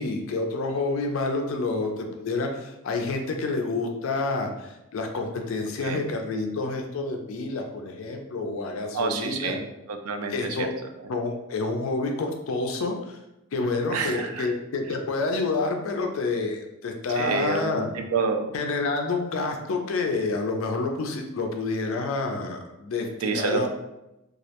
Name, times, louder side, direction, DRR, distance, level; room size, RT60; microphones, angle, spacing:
voice 1, 0.0-9.6 10.3-10.7 11.1-13.2 13.5-17.9 18.5-23.7, left 3 dB, 65° left, 3 dB, 0.4 m, -28 dB
voice 2, 8.9-10.7 13.9-14.5 17.2-18.5 23.2-23.7, right 4 dB, 80° right, 6 dB, 0.3 m, -28 dB
2.3 x 2.1 x 2.8 m, 0.92 s
head